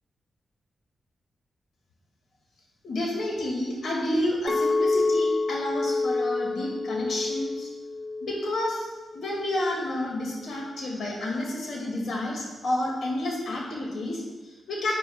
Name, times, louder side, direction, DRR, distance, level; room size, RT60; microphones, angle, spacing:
voice 1, 2.8-7.7 8.2-8.9 9.1-14.9, left 1 dB, 70° left, -2 dB, 2.2 m, -30 dB
Chink clink, 4.5-9.7, left 3 dB, 45° left, 0.4 m, -28 dB
9.2 x 7.3 x 2.4 m, 1.2 s
cardioid pair, 60°, 0 cm